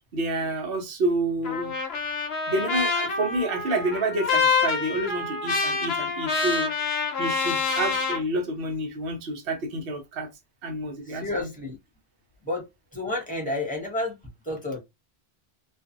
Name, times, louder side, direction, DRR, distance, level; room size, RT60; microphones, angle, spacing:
voice 1, 0.1-1.7 2.5-10.3 10.6-11.5, right 1 dB, 65° right, 0.9 m, -29 dB
Trumpet, 1.4-8.2, left 4 dB, 70° left, 0.9 m, -26 dB
voice 2, 11.2-11.8 12.5-12.6 12.9-14.1 14.5-14.8, left 2 dB, 10° left, 1.0 m, -30 dB
2.5 x 2.3 x 2.5 m
omnidirectional pair, 1.1 m